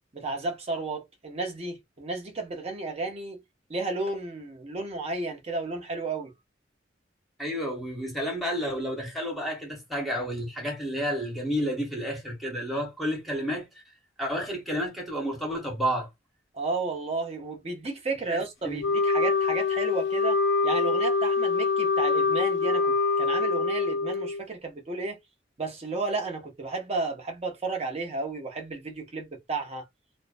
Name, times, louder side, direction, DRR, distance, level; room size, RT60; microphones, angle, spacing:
voice 1, 0.1-3.4 3.7-6.3 16.5-20.4 20.6-25.2 25.6-29.9, right 3 dB, 35° right, 0.7 m, -32 dB
voice 2, 7.4-13.7 14.2-16.1 18.3-18.8, equal, ahead, 1.0 m, -31 dB
Wind instrument woodwind instrument, 18.8-24.4, left 4 dB, 80° left, 0.3 m, -25 dB
2.5 x 2.0 x 2.4 m
head